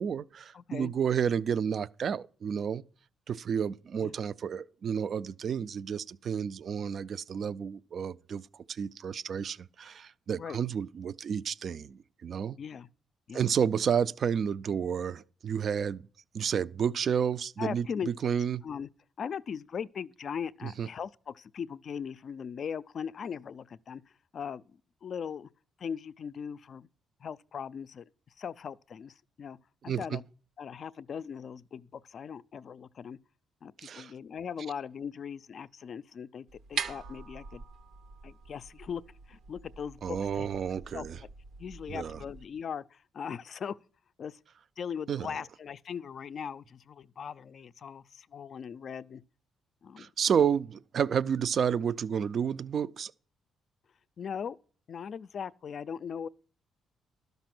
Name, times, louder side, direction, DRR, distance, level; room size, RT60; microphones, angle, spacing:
voice 1, 0.0-2.8 3.3-8.4 8.7-12.6 13.3-16.1 16.3-17.9 18.2-18.6 20.6-20.9 29.9-30.2 33.8-34.1 40.0-41.2 41.9-42.2 45.1-45.3 50.0-53.1, right 7 dB, 55° right, 0.4 m, -31 dB
voice 2, 0.5-0.9 4.0-4.2 10.4-10.6 12.6-12.9 13.3-13.5 17.6-18.1 18.6-18.9 19.2-24.0 24.3-25.5 25.8-26.9 27.2-28.0 28.4-29.6 29.8-30.2 30.6-33.2 33.6-37.6 38.2-39.0 39.3-40.5 40.9-41.1 41.6-43.8 44.2-44.4 44.8-49.2 49.8-50.1 54.2-54.6 54.9-56.3, left 7 dB, 55° left, 0.3 m, -39 dB
sound 1, 36.5-42.4, right 5 dB, 80° right, 0.8 m, -43 dB
12.0 x 5.4 x 6.0 m
cardioid pair, 90°, 0 cm